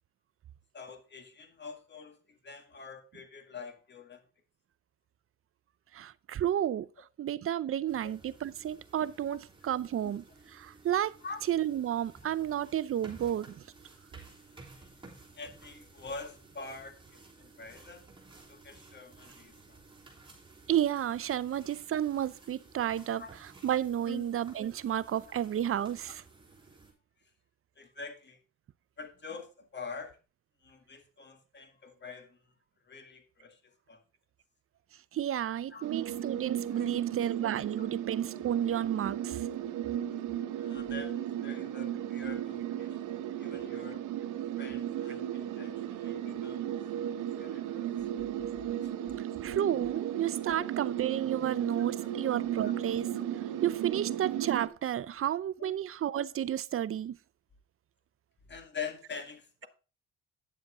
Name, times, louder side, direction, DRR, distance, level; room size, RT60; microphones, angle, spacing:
voice 1, 0.7-4.2 8.0-8.1 9.3-9.4 10.0-10.1 11.2-11.4 14.2-14.4 14.8-14.9 15.3-18.0 18.5-19.8 23.2-23.3 24.1-24.2 27.8-28.4 29.0-30.2 30.6-32.4 32.9-33.6 33.9-34.0 35.7-35.9 36.7-36.9 37.8-37.9 40.6-44.0 44.6-46.7 47.1-47.9 50.5-50.6 52.0-52.1 52.5-52.7 55.6-55.7 58.5-59.7, left 5 dB, 35° left, 2.0 m, -45 dB
voice 2, 5.9-6.9 7.2-10.2 10.5-11.2 11.5-13.6 20.7-26.2 35.1-39.5 49.4-53.1 53.6-57.2, right 10 dB, 45° right, 0.5 m, -31 dB
sound 1, 7.9-26.9, right 3 dB, 15° right, 3.3 m, -55 dB
sound 2, 35.8-54.7, right 11 dB, 85° right, 1.0 m, -35 dB
9.5 x 7.3 x 3.7 m
cardioid pair, 90°, 30 cm